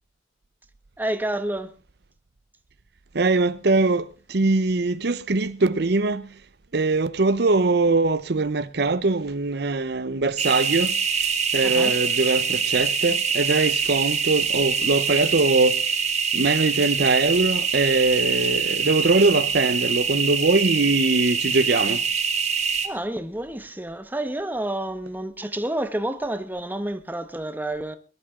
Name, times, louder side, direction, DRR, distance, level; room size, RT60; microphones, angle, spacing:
voice 1, 1.0-1.7 11.6-11.9 22.8-28.0, right 1 dB, 10° right, 1.2 m, -29 dB
voice 2, 3.1-6.3 6.7-11.0 11.5-15.8 16.3-22.0, right 3 dB, 65° right, 0.8 m, -22 dB
sound 1, 10.4-22.9, right 6 dB, 40° right, 2.1 m, -24 dB
22.0 x 12.0 x 3.7 m
head